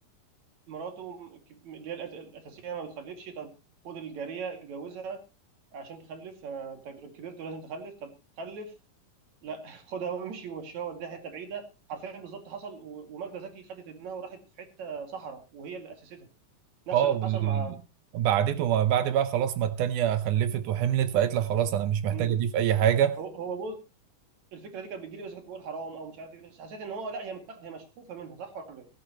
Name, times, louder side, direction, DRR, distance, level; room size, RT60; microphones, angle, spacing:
voice 1, 0.7-3.5 3.8-5.2 5.7-8.7 9.4-16.3 16.9-17.7 22.1-22.3 23.2-23.8 24.5-28.9, right 5 dB, 60° right, 3.4 m, -39 dB
voice 2, 16.9-17.6 18.1-23.2, right 10 dB, 75° right, 2.2 m, -25 dB
16.5 x 14.5 x 2.9 m
omnidirectional pair, 3.7 m